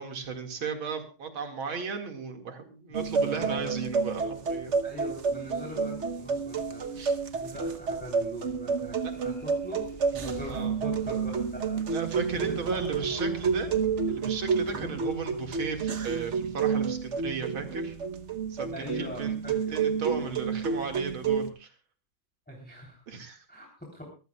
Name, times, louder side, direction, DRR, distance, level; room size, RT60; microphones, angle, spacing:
voice 1, 0.0-4.8 6.9-7.2 9.0-9.1 10.5-10.7 11.9-13.7 14.1-18.0 18.5-19.4 19.7-21.7 23.1-23.4, right 5 dB, 75° right, 4 dB, 2.8 m, -35 dB
voice 2, 2.9-3.7 4.8-7.0 7.3-9.9 10.1-11.8 12.5-13.2 13.7-13.8 14.7-14.9 18.7-19.8 20.4-20.5 22.5-23.0 23.5-24.1, equal, 5° left, -2 dB, 3.2 m, -42 dB
sound 1, 2.9-21.5, right 5 dB, 50° right, 0.9 m, -30 dB
sound 2, 8.8-17.9, equal, 15° right, 1.4 m, -49 dB
23.5 x 14.5 x 2.3 m, 0.34 s
omnidirectional pair, 2.3 m